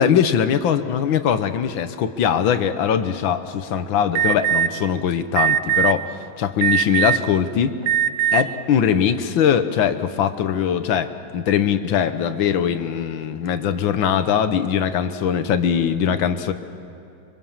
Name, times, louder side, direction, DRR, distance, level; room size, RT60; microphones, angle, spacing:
voice 1, 0.0-7.8 8.3-16.5, left 8 dB, 70° left, 10 dB, 1.7 m, -21 dB
Alarm, 4.2-4.7 5.4-5.9 6.6-7.3 7.8-8.4, right 9 dB, 75° right, 1.7 m, -19 dB
25.5 x 23.5 x 7.3 m, 2.6 s
omnidirectional pair, 2.4 m